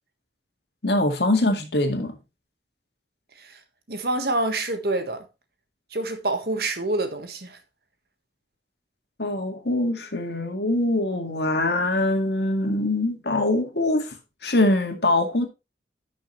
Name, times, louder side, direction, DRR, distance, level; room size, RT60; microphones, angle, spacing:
voice 1, 0.8-2.2 9.2-14.1 14.4-15.5, left 2 dB, 70° left, 2.0 m, -23 dB
voice 2, 3.9-5.2 5.9-7.6, right 2 dB, 60° right, 1.5 m, -27 dB
11.5 x 6.3 x 3.2 m
head